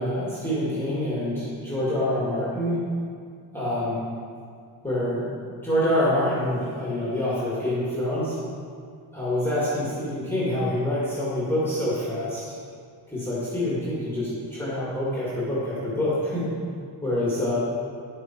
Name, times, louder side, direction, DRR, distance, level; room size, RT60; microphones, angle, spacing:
voice 1, 0.0-2.8 3.5-4.0 4.8-5.3 5.6-8.4 9.1-12.5 13.1-16.5 17.0-17.6, left 1 dB, 5° left, -9 dB, 2.0 m, -26 dB
9.9 x 8.6 x 4.5 m, 2.2 s
cardioid pair, 165°, 48 cm